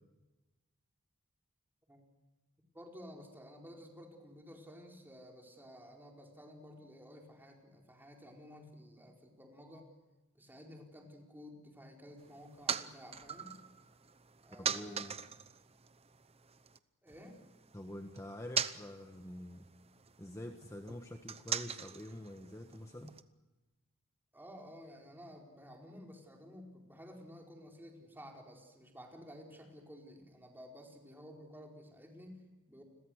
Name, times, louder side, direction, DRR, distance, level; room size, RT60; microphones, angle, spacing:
voice 1, 2.7-9.9 10.3-13.6 14.4-15.2 17.0-17.4 24.3-32.8, equal, 10° right, 0 dB, 4.5 m, -53 dB
sound 1, 12.2-16.8 17.1-23.2, right 7 dB, 30° right, 0.8 m, -42 dB
voice 2, 14.6-15.2 17.7-19.6 20.2-23.1, left 1 dB, 15° left, 4 dB, 1.3 m, -46 dB
29.5 x 22.0 x 6.5 m, 1.1 s
head